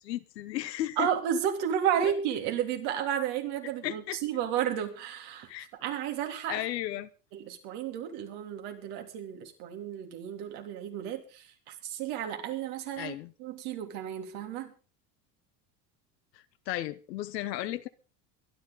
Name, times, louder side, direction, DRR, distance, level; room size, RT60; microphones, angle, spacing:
voice 1, 0.0-1.1 2.0-2.1 3.8-4.2 5.5-5.7 6.5-7.1 13.0-13.3 16.7-17.9, left 14 dB, 85° left, 1.1 m, -34 dB
voice 2, 1.0-5.5 5.8-6.6 7.3-13.1 13.4-14.7, right 9 dB, 70° right, 3.4 m, -32 dB
23.0 x 10.5 x 4.0 m
hypercardioid pair, 85°, 49 cm